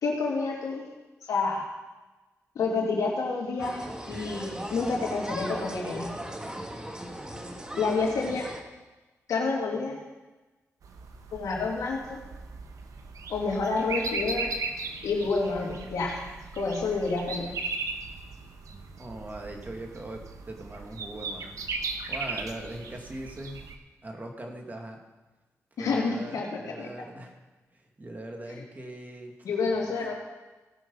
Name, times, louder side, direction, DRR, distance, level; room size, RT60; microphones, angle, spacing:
voice 1, 0.0-0.9 1.2-1.6 2.5-6.1 7.8-8.5 9.3-10.0 11.3-12.2 13.3-14.5 15.0-16.2 16.5-17.5 25.8-26.9 29.4-30.1, left 4 dB, 85° left, -2 dB, 2.6 m, -29 dB
sound 1, 3.6-8.6, right 1 dB, 15° right, 1.5 m, -38 dB
sound 2, 10.8-23.7, right 4 dB, 75° right, 1.0 m, -37 dB
voice 2, 18.7-21.6 22.1-23.6 24.0-25.0 25.8-27.4 27.7-29.3 29.6-29.9, right 1 dB, 30° right, 2 dB, 2.1 m, -41 dB
17.0 x 6.0 x 5.5 m, 1.2 s
cardioid pair, 65°, 6 cm